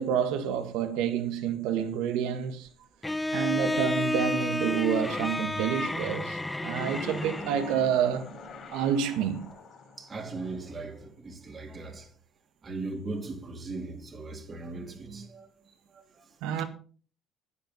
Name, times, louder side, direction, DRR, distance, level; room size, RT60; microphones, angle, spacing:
voice 1, 0.0-2.7 3.3-8.3 8.7-9.5 16.4-16.6, right 8 dB, 80° right, 1.7 m, -28 dB
Bowed string instrument, 3.0-7.9, left 1 dB, 15° left, 0.6 m, -31 dB
sound 1, 6.8-11.0, left 2 dB, 55° left, 4.2 m, -44 dB
voice 2, 10.0-12.1 12.6-16.3, right 3 dB, 40° right, 2.7 m, -39 dB
10.5 x 9.5 x 5.4 m
supercardioid pair, 70°, 0 cm